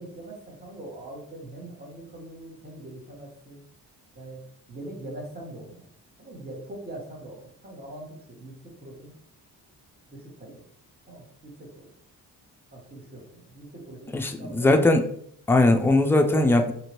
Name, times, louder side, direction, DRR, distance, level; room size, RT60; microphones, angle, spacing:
voice 1, 0.0-3.6 4.1-4.4 4.7-5.9 6.2-9.1 10.1-10.6 11.1-11.9 12.7-14.7, right 1 dB, 20° right, -2 dB, 1.3 m, -42 dB
voice 2, 14.1-15.0 15.5-16.7, left 2 dB, 5° left, 4 dB, 0.4 m, -20 dB
3.0 x 2.7 x 3.0 m, 0.66 s
supercardioid pair, 55°, 43 cm